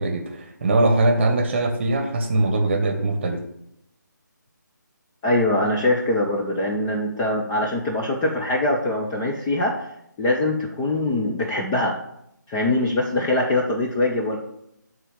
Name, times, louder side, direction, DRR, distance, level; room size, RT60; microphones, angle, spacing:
voice 1, 0.0-3.4, right 2 dB, 35° right, 6 dB, 1.1 m, -21 dB
voice 2, 5.2-9.8 10.2-12.0 12.5-14.4, left 1 dB, 10° left, -2 dB, 0.4 m, -23 dB
6.7 x 3.7 x 6.1 m, 0.79 s
figure-of-eight pair, 160°, 10 cm